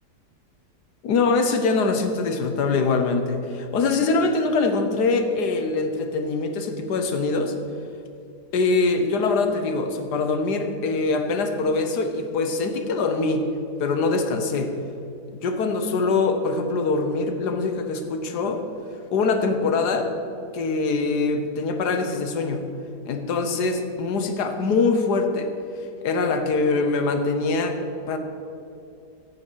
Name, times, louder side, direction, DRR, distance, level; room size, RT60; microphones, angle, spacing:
voice 1, 1.0-7.5 8.5-13.4 13.8-14.7 15.4-18.6 19.1-20.1 20.5-22.6 23.1-25.5 26.0-27.8 28.1-28.2, left 3 dB, 75° left, 6 dB, 1.6 m, -23 dB
15.0 x 7.1 x 6.3 m, 2.6 s
omnidirectional pair, 1.8 m